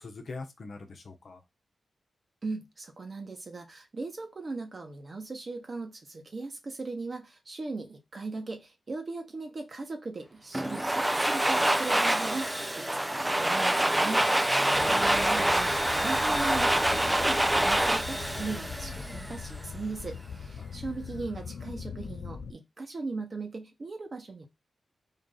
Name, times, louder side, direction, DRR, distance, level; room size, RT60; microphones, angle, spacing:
voice 1, 0.0-1.4 14.5-14.9 20.6-20.8, left 3 dB, 65° left, 0.9 m, -43 dB
voice 2, 2.4-24.5, right 3 dB, 50° right, 1.1 m, -38 dB
Domestic sounds home sounds, 10.5-19.5, right 1 dB, 15° right, 0.4 m, -26 dB
sound 1, 14.7-22.5, left 6 dB, 80° left, 0.4 m, -41 dB
3.8 x 2.6 x 3.8 m
cardioid pair, 55°, 0 cm